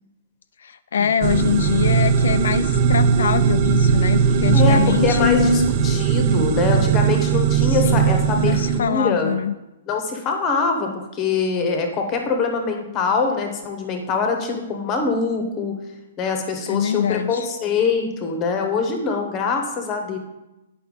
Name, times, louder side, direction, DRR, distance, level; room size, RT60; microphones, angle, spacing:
voice 1, 0.6-5.7 7.6-8.1 8.4-9.5 16.7-17.5, left 7 dB, 65° left, 11 dB, 0.4 m, -23 dB
sound 1, 1.2-8.8, right 7 dB, 25° right, 0.5 m, -19 dB
voice 2, 4.5-9.3 9.9-15.7 16.2-20.2, left 4 dB, 15° left, 4 dB, 1.0 m, -23 dB
9.8 x 5.6 x 5.4 m, 0.97 s
hypercardioid pair, 180°, 0 cm